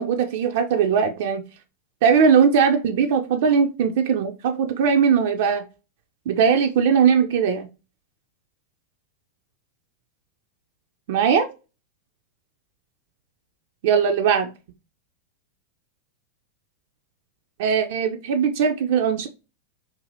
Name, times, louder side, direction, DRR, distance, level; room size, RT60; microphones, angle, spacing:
voice 1, 0.0-1.4 2.0-5.6 6.3-7.7 11.1-11.5 13.8-14.5 17.6-19.3, right 6 dB, 50° right, 0.3 m, -19 dB
2.6 x 2.5 x 2.6 m
figure-of-eight pair, 90°, 0 cm